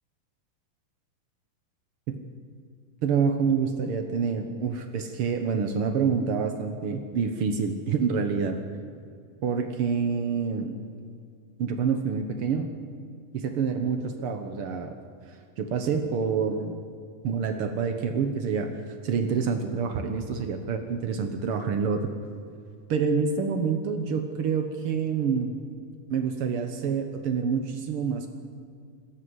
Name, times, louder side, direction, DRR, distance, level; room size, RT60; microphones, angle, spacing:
voice 1, 3.0-8.6 9.4-10.8 11.6-12.7 13.3-15.0 15.3-16.8 17.2-22.1 22.9-25.6 26.1-28.3, right 6 dB, 75° right, 6 dB, 1.2 m, -27 dB
27.0 x 13.0 x 8.0 m, 2.3 s
omnidirectional pair, 4.3 m